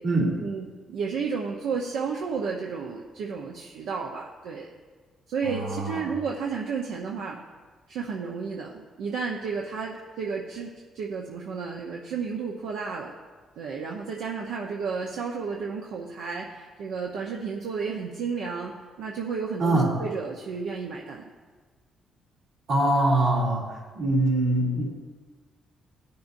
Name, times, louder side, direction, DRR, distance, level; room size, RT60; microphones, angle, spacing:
voice 1, 0.4-4.7 5.3-7.4 7.9-13.1 13.6-18.7 19.0-21.2, right 5 dB, 90° right, -1 dB, 0.8 m, -32 dB
voice 2, 5.4-6.0 19.6-19.9 22.7-23.6 23.9-24.8, right 1 dB, 70° right, -4 dB, 3.1 m, -23 dB
16.5 x 6.7 x 2.6 m, 1.4 s
cardioid pair, 90°, 0 cm